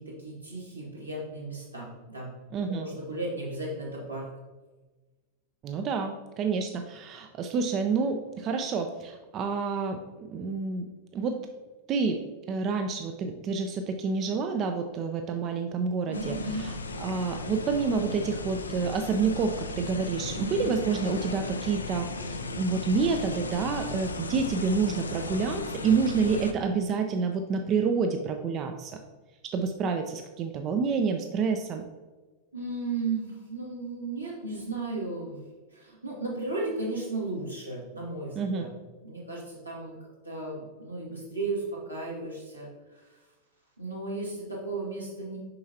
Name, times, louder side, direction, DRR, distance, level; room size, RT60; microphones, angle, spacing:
voice 1, 0.0-2.3 2.7-4.3 16.0-16.7 20.3-20.7 32.5-35.4 35.7-38.7 39.0-40.0 40.2-43.2 43.8-45.4, right 3 dB, 90° right, -6 dB, 2.0 m, -35 dB
voice 2, 2.5-2.9 5.6-10.9 11.1-11.4 11.9-12.2 12.5-16.4 17.0-29.0 29.5-31.8 38.4-38.7, right 5 dB, 35° right, 6 dB, 0.5 m, -28 dB
sound 1, 16.1-26.5, left 2 dB, 75° left, 0.5 m, -36 dB
6.6 x 5.5 x 2.8 m, 1.2 s
figure-of-eight pair, 90°, 0 cm